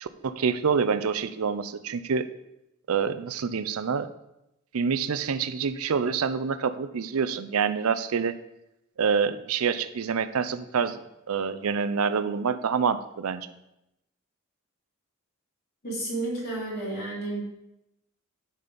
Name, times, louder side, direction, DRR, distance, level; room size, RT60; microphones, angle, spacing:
voice 1, 0.0-2.3 2.9-4.1 4.7-8.3 9.0-11.0 11.3-13.5, right 6 dB, 85° right, 13 dB, 0.5 m, -27 dB
voice 2, 15.8-17.6, right 2 dB, 50° left, -5 dB, 3.3 m, -31 dB
10.5 x 4.2 x 5.1 m, 0.88 s
head